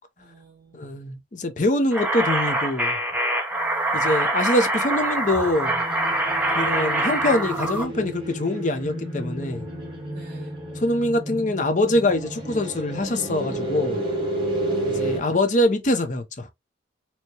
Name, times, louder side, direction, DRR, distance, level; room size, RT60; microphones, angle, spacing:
voice 1, 0.2-0.9 3.5-4.1 10.1-10.6 14.7-15.3, right 2 dB, 50° right, 2.0 m, -50 dB
voice 2, 0.7-3.0 3.9-5.8 6.6-9.6 10.8-14.0 14.9-16.5, left 1 dB, 40° left, 0.6 m, -24 dB
sound 1, 1.9-7.8, right 1 dB, 10° right, 0.6 m, -24 dB
sound 2, 5.0-15.2, right 1 dB, 25° right, 1.4 m, -31 dB
4.5 x 2.1 x 2.8 m
head